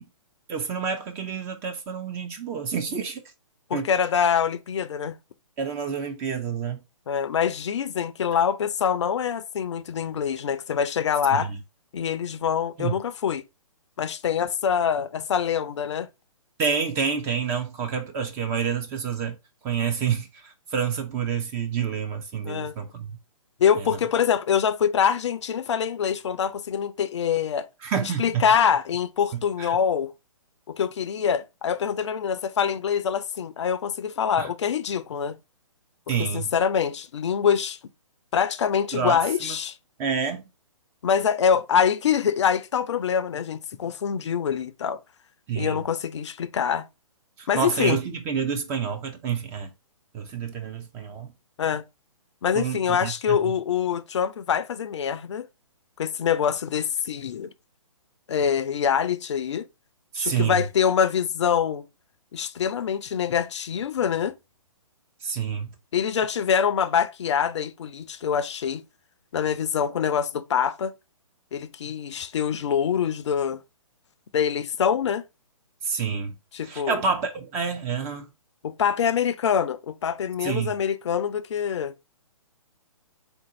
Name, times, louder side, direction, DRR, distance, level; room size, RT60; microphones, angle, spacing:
voice 1, 0.5-3.2 3.7-3.9 5.6-6.8 11.3-11.6 12.8-13.0 16.6-19.4 19.6-23.1 27.8-28.4 29.6-29.7 34.4-34.5 36.1-36.5 38.9-39.6 40.0-40.4 45.5-45.8 47.4-49.7 50.1-51.3 52.5-53.5 60.1-60.6 65.2-65.7 75.8-76.3 76.6-78.3 80.4-80.7, right 6 dB, 15° right, 0.3 m, -28 dB
voice 2, 3.7-5.2 7.1-11.5 11.9-13.4 14.0-16.1 22.4-22.7 23.6-27.7 28.0-30.1 30.7-35.4 36.2-37.8 38.3-39.8 41.0-45.0 45.6-46.8 47.5-48.0 51.6-51.8 52.4-55.5 56.0-57.5 58.3-59.6 60.2-61.9 62.3-64.3 65.9-68.8 69.3-70.9 71.5-73.6 74.3-75.2 76.5-77.0 78.6-81.9, left 7 dB, 55° left, 0.4 m, -25 dB
3.8 x 2.6 x 3.7 m
figure-of-eight pair, 130°, 18 cm